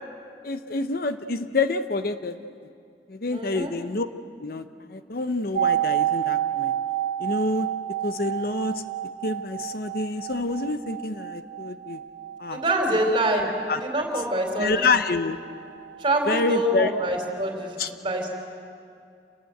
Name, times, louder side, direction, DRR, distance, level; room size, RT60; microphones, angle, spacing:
voice 1, 0.4-2.5 3.1-4.1 4.4-6.7 7.2-7.7 8.0-8.8 9.2-12.0 12.4-12.6 13.7-13.8 14.6-15.4 16.3-16.9 17.8-17.9, left 3 dB, 55° left, 10 dB, 0.8 m, -27 dB
voice 2, 3.3-3.8 12.5-13.5 13.8-14.9 16.0-18.3, right 1 dB, 30° right, 2 dB, 4.0 m, -25 dB
sound 1, 5.5-15.3 15.5-15.6, right 11 dB, 85° right, 1.5 m, -29 dB
28.0 x 18.5 x 7.9 m, 2.4 s
head